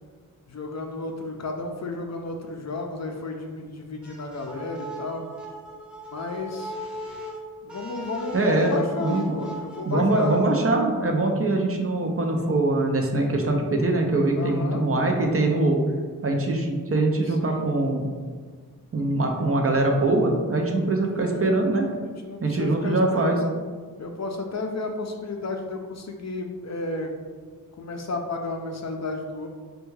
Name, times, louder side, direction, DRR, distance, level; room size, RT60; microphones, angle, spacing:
voice 1, 0.5-5.3 6.1-6.7 7.6-10.4 14.3-14.8 17.2-17.7 21.1-21.6 22.0-23.4 24.0-27.1 27.8-29.5, left 3 dB, 50° left, 3 dB, 0.5 m, -32 dB
sound 1, 4.0-10.7, equal, 5° right, 0.7 m, -38 dB
voice 2, 8.3-9.3 9.8-15.8 16.2-18.1 18.9-21.9 22.4-23.4, right 2 dB, 40° right, 2 dB, 0.5 m, -23 dB
3.3 x 2.3 x 3.1 m, 1.5 s
wide cardioid pair, 45°, 35 cm